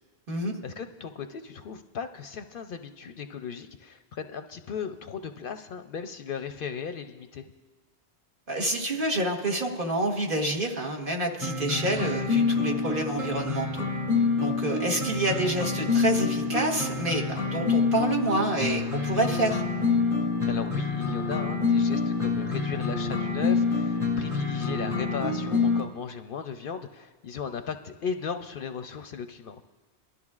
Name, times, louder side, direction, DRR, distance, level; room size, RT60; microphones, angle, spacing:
voice 1, 0.3-7.5 20.5-29.6, left 6 dB, 60° left, 8 dB, 0.7 m, -36 dB
voice 2, 8.5-13.9 14.4-19.6, right 1 dB, 55° right, 0 dB, 1.6 m, -28 dB
sound 1, 11.4-25.8, left 4 dB, 30° right, 1.9 m, -27 dB
23.0 x 12.5 x 2.4 m, 1.2 s
omnidirectional pair, 1.1 m